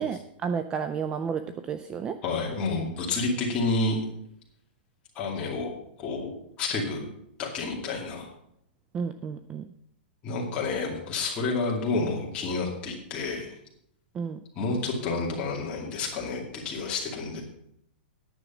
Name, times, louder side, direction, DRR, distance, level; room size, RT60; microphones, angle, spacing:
voice 1, 0.0-2.2 8.9-9.7 14.1-14.4, right 6 dB, 15° right, 10 dB, 0.3 m, -31 dB
voice 2, 2.2-4.0 5.2-5.7 6.0-7.1 7.4-8.3 10.2-13.5 14.6-17.4, left 3 dB, 20° left, -2 dB, 2.4 m, -29 dB
10.0 x 6.3 x 7.2 m, 0.72 s
hypercardioid pair, 165°, 6 cm